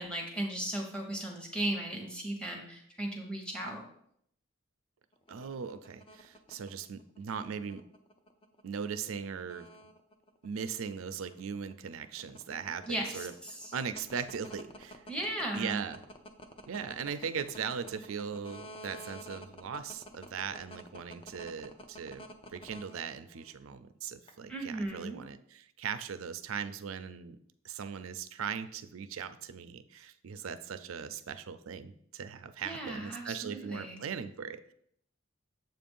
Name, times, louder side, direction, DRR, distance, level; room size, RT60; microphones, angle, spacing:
voice 1, 0.0-3.8 12.9-13.7 15.1-15.8 24.5-25.2 32.6-34.0, right 1 dB, 5° left, 0 dB, 1.0 m, -36 dB
sound 1, 5.1-23.5 24.3-24.8, left 1 dB, 25° left, 0.5 m, -49 dB
voice 2, 5.3-7.8 8.6-9.7 10.4-13.3 13.7-15.0 15.5-16.0 16.7-22.3 22.5-27.4 27.6-34.7, right 6 dB, 80° right, 11 dB, 0.4 m, -39 dB
7.6 x 2.5 x 5.3 m, 0.69 s
head